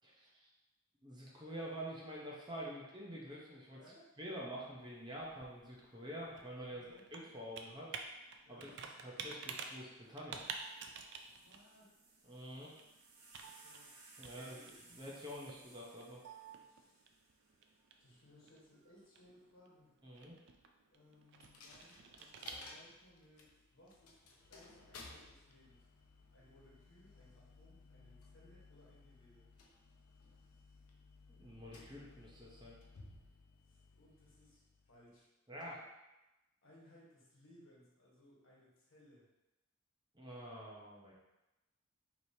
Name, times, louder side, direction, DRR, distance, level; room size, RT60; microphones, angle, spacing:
voice 1, 0.0-0.5 1.0-3.8 4.2-6.8 7.1-7.9 8.5-8.7 9.0-10.4 12.2-12.7 14.2-16.2 20.0-20.3 31.4-32.8 35.5-35.8 40.1-41.1, equal, 20° right, -4 dB, 0.7 m, -47 dB
voice 2, 3.8-4.2 6.7-7.1 8.4-8.7 11.4-12.0 13.5-13.9 14.2-14.7 16.6-17.1 18.0-19.9 20.9-25.9 26.3-29.5 33.6-35.3 36.6-39.3, left 1 dB, 65° left, -5 dB, 1.2 m, -64 dB
Computer keyboard, 4.8-23.1, right 5 dB, 55° right, 0.4 m, -52 dB
sound 1, 10.0-10.1 10.4-17.8 18.7-19.2, right 3 dB, 85° right, 0.8 m, -62 dB
Coin (dropping), 21.4-35.1, left 3 dB, 85° left, 0.6 m, -59 dB
4.8 x 3.0 x 2.7 m, 1.0 s
head